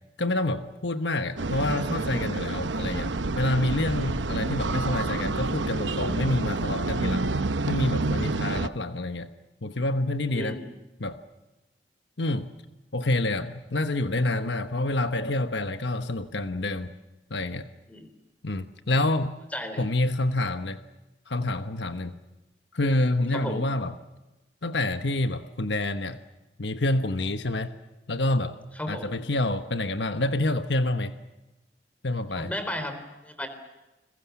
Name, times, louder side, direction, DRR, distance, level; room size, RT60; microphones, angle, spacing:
voice 1, 0.2-7.3 7.7-9.3 9.6-10.6 11.0-11.2 12.2-12.5 12.9-16.9 17.3-17.7 18.4-19.4 19.8-20.8 21.3-22.1 22.7-23.9 24.6-26.2 26.6-27.7 28.1-28.6 28.9-31.1 32.0-32.5, left 2 dB, 70° left, 9 dB, 1.2 m, -27 dB
sound 1, 1.4-8.7, right 3 dB, 80° right, 0.9 m, -28 dB
voice 2, 10.3-10.7 17.9-18.1 19.5-19.9 23.3-23.6 28.8-29.1 32.3-33.5, left 1 dB, 10° left, 8 dB, 3.6 m, -34 dB
30.0 x 22.0 x 7.2 m, 1.0 s
head